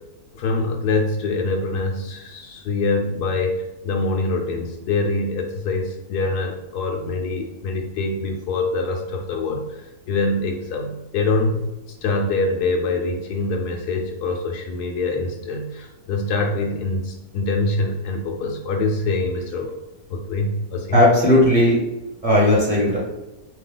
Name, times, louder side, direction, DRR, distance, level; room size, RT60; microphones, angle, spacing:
voice 1, 0.3-11.7 12.0-19.7 20.1-21.0, left 3 dB, 75° left, 1 dB, 1.0 m, -24 dB
voice 2, 20.9-21.8 22.2-23.0, left 1 dB, 25° right, -6 dB, 1.1 m, -16 dB
4.2 x 2.9 x 3.8 m, 1.0 s
omnidirectional pair, 1.8 m